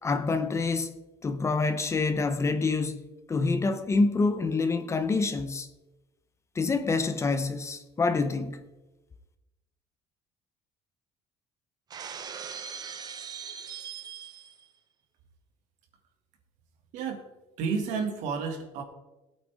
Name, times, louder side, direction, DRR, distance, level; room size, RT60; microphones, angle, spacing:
voice 1, 0.0-3.0 3.3-5.7 6.5-8.6, left 3 dB, 20° left, 0.9 m, -27 dB
Shatter, 11.9-14.7, right 7 dB, 35° right, 0.9 m, -40 dB
voice 2, 16.9-17.3 17.6-18.8, right 5 dB, 75° right, 2.4 m, -31 dB
19.0 x 8.6 x 3.7 m
cardioid pair, 135°, 13 cm